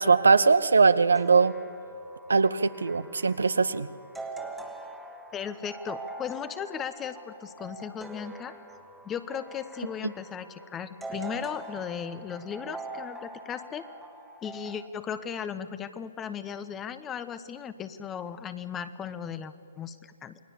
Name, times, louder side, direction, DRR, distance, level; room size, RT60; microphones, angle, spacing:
voice 1, 0.0-1.5 2.3-3.9, right 4 dB, 80° right, 14 dB, 0.9 m, -21 dB
sound 1, 1.1-14.9, right 2 dB, 5° right, 1.7 m, -43 dB
voice 2, 5.3-8.5 9.0-13.8 14.4-20.4, left 7 dB, 20° left, 12 dB, 1.1 m, -36 dB
28.5 x 20.5 x 7.1 m, 2.4 s
figure-of-eight pair, 130°, 0 cm